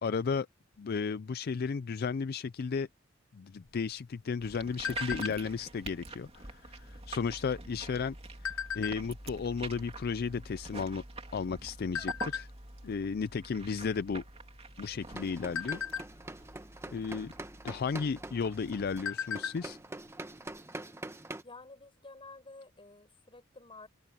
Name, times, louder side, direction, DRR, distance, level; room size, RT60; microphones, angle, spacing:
voice 1, 0.0-0.5 0.8-2.9 3.3-8.1 8.4-11.0 11.3-12.5 12.8-14.2 14.8-15.8 16.9-17.3 17.6-19.8, left 5 dB, 50° left, 0.4 m, -34 dB
sound 1, 3.7-5.7 6.1-6.4 6.7-7.0 7.7-9.3 9.9-10.0 10.2-11.5 11.9-12.4 13.0-13.2 13.5-13.7 14.2-14.7 15.1-16.6 17.6-17.7 18.2-18.3 18.6-19.7 20.0-20.1 20.5-20.6, left 8 dB, 80° left, 1.1 m, -37 dB
sound 2, 4.4-19.0, right 3 dB, 30° right, 2.8 m, -46 dB
sound 3, 15.0-21.4, right 2 dB, 15° right, 1.1 m, -45 dB
voice 2, 21.4-23.9, left 3 dB, 25° left, 5.8 m, -51 dB
open air
head